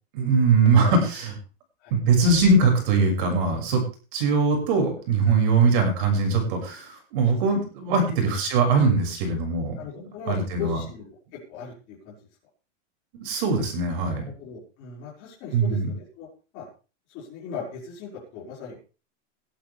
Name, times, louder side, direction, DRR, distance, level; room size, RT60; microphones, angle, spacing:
voice 1, 0.1-1.4 1.9-3.8 4.1-10.8 13.1-14.2 15.5-15.9, right 4 dB, 45° right, 3 dB, 6.6 m, -21 dB
voice 2, 7.3-7.6 7.9-8.0 9.8-11.2 11.5-12.1 14.2-16.3 16.5-16.6 17.1-18.8, left 6 dB, 35° left, -6 dB, 5.9 m, -38 dB
20.0 x 11.5 x 3.6 m, 0.35 s
supercardioid pair, 170°, 36 cm